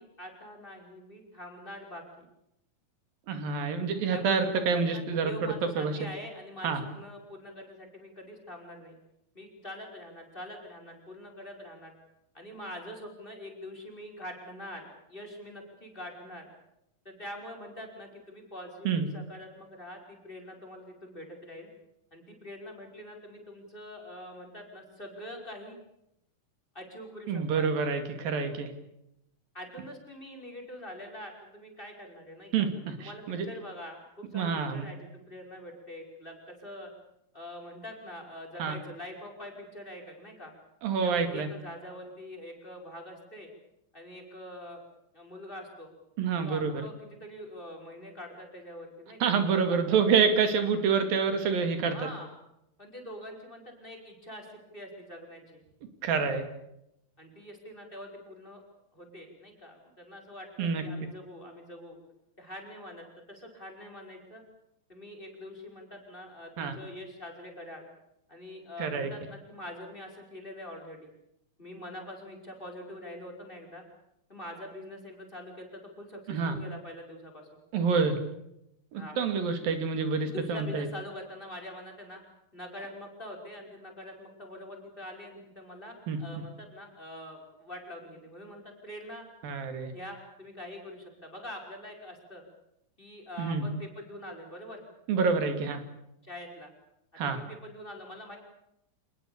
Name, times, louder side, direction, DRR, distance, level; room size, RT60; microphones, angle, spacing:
voice 1, 0.0-2.3 4.1-9.0 9.3-11.9 12.3-16.5 17.0-21.7 22.1-25.8 26.7-27.7 29.5-32.7 33.0-36.9 37.3-40.5 41.0-43.5 43.9-44.8 45.1-45.9 46.4-50.0 51.9-52.3 52.8-55.6 57.2-58.6 58.9-62.0 62.4-64.4 64.9-67.8 68.3-71.1 71.6-73.8 74.3-77.5 78.9-79.2 80.2-82.2 82.5-89.2 89.9-92.4 93.0-94.8 96.2-96.7 97.2-98.4, left 1 dB, 15° left, 3 dB, 5.4 m, -44 dB
voice 2, 3.3-5.9 6.6-6.8 18.9-19.0 27.3-28.7 32.5-33.5 34.3-34.8 38.6-38.7 40.8-41.5 46.2-46.9 49.2-52.0 56.0-56.4 60.6-60.8 66.6-66.7 68.8-69.1 76.3-76.6 77.7-78.2 78.9-80.9 86.1-86.2 89.4-89.9 93.4-93.6 95.1-95.8 97.2-97.4, right 5 dB, 85° right, 8 dB, 4.2 m, -27 dB
27.5 x 21.0 x 7.1 m, 0.82 s
omnidirectional pair, 4.0 m